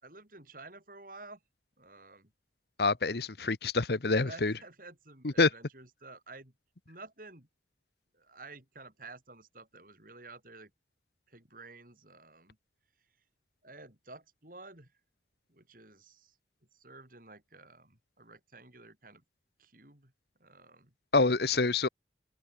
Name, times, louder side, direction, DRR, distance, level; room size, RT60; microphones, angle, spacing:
voice 1, 0.0-1.4 1.8-2.3 4.2-6.5 6.9-7.5 8.1-10.7 11.3-12.6 13.0-13.1 13.6-14.9 15.5-16.4 16.7-19.2 19.6-20.1 20.4-20.9, right 3 dB, 50° right, 5.0 m, -51 dB
voice 2, 2.8-4.5 5.4-5.5 21.1-21.9, left 3 dB, 65° left, 1.0 m, -26 dB
open air
head